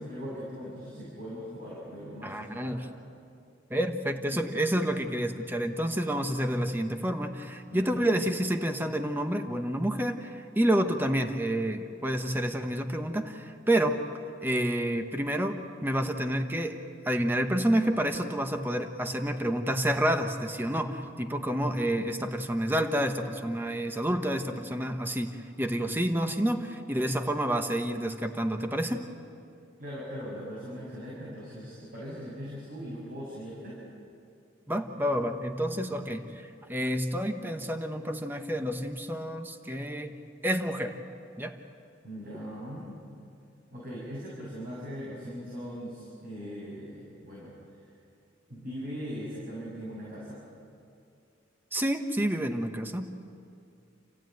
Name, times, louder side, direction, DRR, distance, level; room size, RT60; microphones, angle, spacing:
voice 1, 0.0-2.8 7.7-8.0 29.8-33.8 35.7-36.0 42.0-43.0 43.7-47.5 48.5-50.4 53.1-53.2, equal, 50° right, -6 dB, 6.9 m, -40 dB
voice 2, 2.2-2.8 3.7-14.0 14.4-29.1 34.7-40.1 40.4-41.0 41.4-41.5 51.7-53.1, right 1 dB, 10° right, 5 dB, 1.2 m, -29 dB
29.5 x 15.0 x 9.3 m, 2.4 s
head